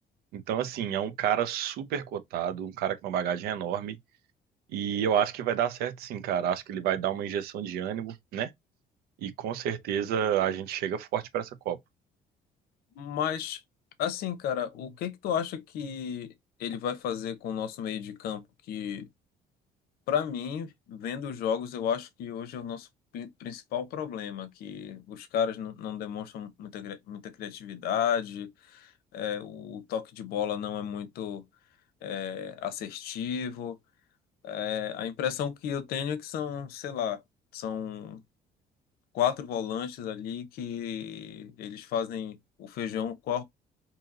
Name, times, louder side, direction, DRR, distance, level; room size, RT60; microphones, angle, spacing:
voice 1, 0.3-4.0 4.7-8.5 9.2-11.8, right 9 dB, 85° right, 0.6 m, -30 dB
voice 2, 13.0-13.6 14.0-16.3 16.6-18.4 18.7-19.1 20.1-22.9 23.1-31.4 32.0-33.8 34.4-37.2 37.5-38.2 39.1-43.4, left 8 dB, 80° left, 0.7 m, -33 dB
2.8 x 2.7 x 3.7 m
cardioid pair, 175°, 16 cm